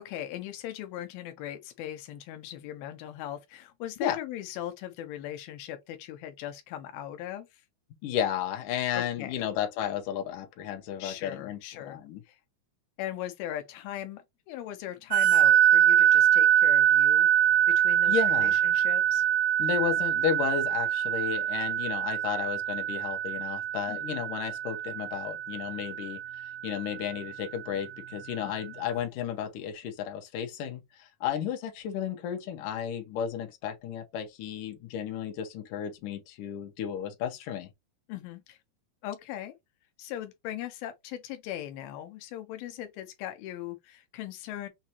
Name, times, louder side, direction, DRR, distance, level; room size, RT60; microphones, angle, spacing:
voice 1, 0.0-7.6 8.9-9.4 11.0-12.0 12.3-12.4 13.0-17.3 17.8-19.3 23.9-24.0 28.4-28.8 38.1-38.6 39.0-39.5 40.0-44.7, left 12 dB, 90° left, 2.6 m, -39 dB
voice 2, 8.0-12.2 18.1-18.6 19.6-26.2 26.6-37.7, left 9 dB, 70° left, 2.3 m, -33 dB
sound 1, 15.1-27.3, right 10 dB, 90° right, 2.6 m, -24 dB
6.5 x 2.4 x 2.8 m
omnidirectional pair, 4.1 m